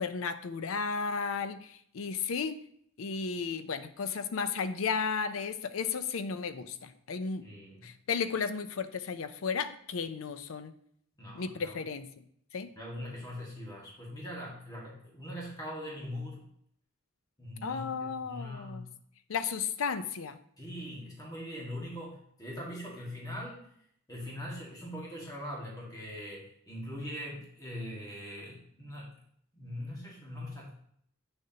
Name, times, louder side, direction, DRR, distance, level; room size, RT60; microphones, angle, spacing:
voice 1, 0.0-2.6 3.0-7.4 7.8-10.7 11.3-12.1 12.5-12.7 17.6-18.8 19.3-20.4, left 5 dB, 80° left, 12 dB, 0.5 m, -34 dB
voice 2, 7.4-7.9 11.2-11.8 12.8-16.5 17.4-18.9 20.6-23.7 24.1-29.1 29.5-30.7, left 1 dB, 20° left, -4 dB, 1.7 m, -41 dB
8.1 x 6.4 x 2.8 m, 0.66 s
head